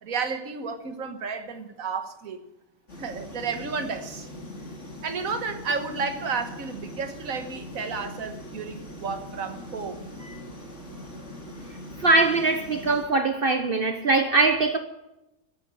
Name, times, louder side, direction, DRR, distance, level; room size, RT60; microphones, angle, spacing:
voice 1, 0.0-2.5 3.0-4.3 5.0-10.1, right 5 dB, 80° right, 1.8 m, -32 dB
sound 1, 2.9-13.0, left 1 dB, 60° left, 3.2 m, -41 dB
voice 2, 12.0-14.8, right 3 dB, 45° right, 1.0 m, -22 dB
14.5 x 10.5 x 8.3 m
omnidirectional pair, 1.4 m